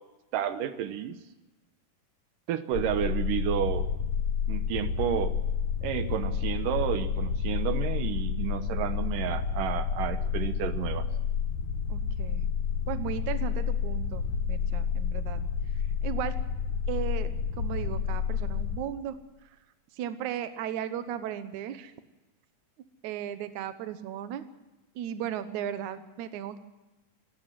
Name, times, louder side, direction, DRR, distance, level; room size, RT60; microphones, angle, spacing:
voice 1, 0.3-1.2 2.5-3.8 4.5-5.3 5.8-11.1, right 10 dB, 85° right, 10 dB, 2.7 m, -31 dB
sound 1, 2.7-18.8, left 6 dB, 65° left, 2.9 m, -30 dB
voice 2, 11.9-12.5 12.9-15.4 16.0-16.4 16.9-17.3 17.6-19.2 19.9-21.9 23.0-24.5 25.0-26.6, right 10 dB, 70° right, 10 dB, 2.4 m, -36 dB
26.0 x 14.0 x 7.7 m, 1.1 s
omnidirectional pair, 3.7 m